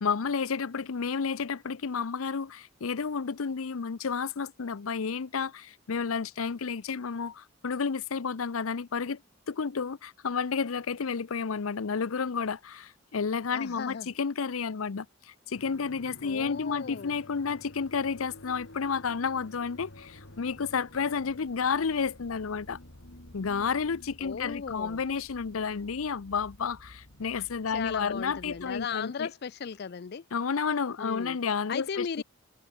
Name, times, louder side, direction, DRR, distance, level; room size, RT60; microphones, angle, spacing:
voice 1, 0.0-9.2 9.5-22.8 23.3-29.3 30.3-32.2, left 5 dB, 90° left, 0.6 m, -31 dB
voice 2, 13.5-14.1 16.2-17.2 24.2-25.0 27.7-30.2 31.0-31.4 31.7-32.2, left 6 dB, 50° left, 0.4 m, -36 dB
sound 1, 15.6-28.9, left 1 dB, 70° left, 3.0 m, -51 dB
head